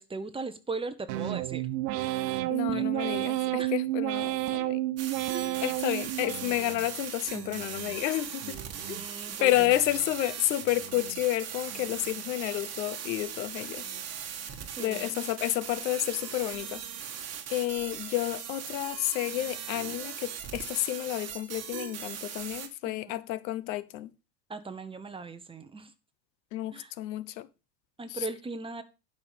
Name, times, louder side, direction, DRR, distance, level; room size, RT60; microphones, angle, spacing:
voice 1, 0.0-1.6 2.7-3.1 3.6-3.7 8.7-9.5 14.8-15.1 22.9-23.2 24.5-25.9 26.7-26.9 28.0-28.8, right 3 dB, 10° right, 1.0 m, -38 dB
sound 1, 1.1-6.9 7.3-8.0 8.4-9.1 9.5-10.2 10.6-11.2 11.7-12.2, right 16 dB, 75° right, 1.0 m, -32 dB
voice 2, 2.5-4.8 5.3-8.6 8.9-9.0 9.4-13.8 14.8-16.8 17.5-24.1 26.5-27.5 28.1-28.3, left 15 dB, 85° left, 1.1 m, -30 dB
sound 2, 5.0-22.7, right 8 dB, 30° right, 1.8 m, -39 dB
11.5 x 5.8 x 5.1 m
supercardioid pair, 135°, 50 cm